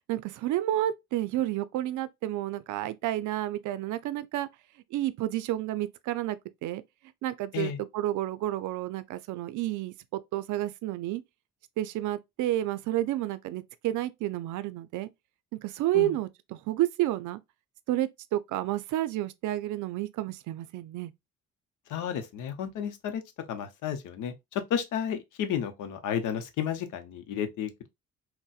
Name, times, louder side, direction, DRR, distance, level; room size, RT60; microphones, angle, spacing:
voice 1, 0.1-4.5 4.9-6.8 7.2-11.2 11.8-15.1 15.5-17.4 17.9-21.1, right 14 dB, 80° right, 0.4 m, -30 dB
voice 2, 21.9-23.2 23.5-27.7, left 9 dB, 80° left, 0.7 m, -32 dB
4.0 x 2.1 x 2.3 m
cardioid pair, 90°, 30 cm